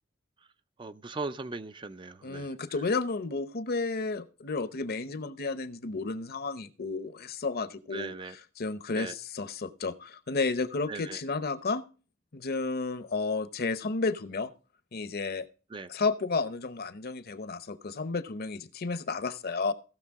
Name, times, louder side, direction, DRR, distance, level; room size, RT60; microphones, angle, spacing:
voice 1, 0.8-2.8 7.9-8.4 8.9-9.2 10.9-11.2 15.7-15.9, right 3 dB, 25° right, 0.4 m, -39 dB
voice 2, 2.2-8.1 8.6-11.8 12.3-14.5 14.9-15.5 15.9-19.7, left 3 dB, 50° left, 0.8 m, -32 dB
16.5 x 6.6 x 3.5 m
head